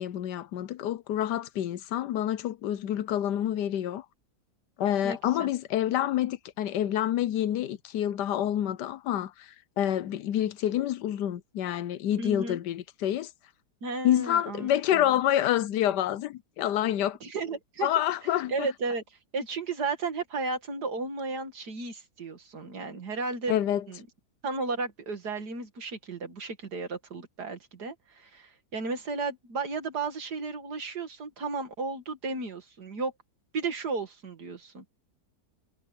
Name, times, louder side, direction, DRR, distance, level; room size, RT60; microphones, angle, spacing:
voice 1, 0.0-4.0 4.8-13.3 14.0-17.2 17.8-18.7 23.5-23.8, left 11 dB, 80° left, 1.3 m, -28 dB
voice 2, 5.0-5.5 12.2-12.6 13.8-15.0 17.2-17.9 18.5-19.0 19.3-23.5 23.9-24.0 24.4-33.1 33.5-34.8, right 4 dB, 70° right, 2.7 m, -34 dB
omnidirectional pair, 1.8 m